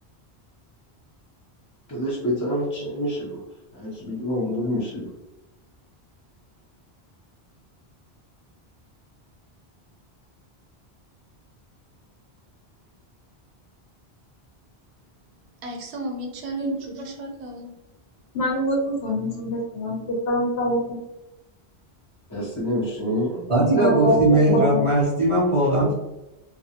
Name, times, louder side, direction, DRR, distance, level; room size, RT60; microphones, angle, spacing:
voice 1, 1.9-3.5 3.7-5.1 22.3-23.5, equal, 30° left, -6 dB, 0.3 m, -27 dB
voice 2, 15.6-17.7, right 2 dB, 85° right, 3 dB, 0.9 m, -33 dB
voice 3, 18.3-20.8 23.5-24.8, equal, 85° left, -2 dB, 0.9 m, -24 dB
voice 4, 23.5-25.9, right 1 dB, 55° right, -4 dB, 0.3 m, -19 dB
2.4 x 2.0 x 2.7 m, 0.95 s
omnidirectional pair, 1.1 m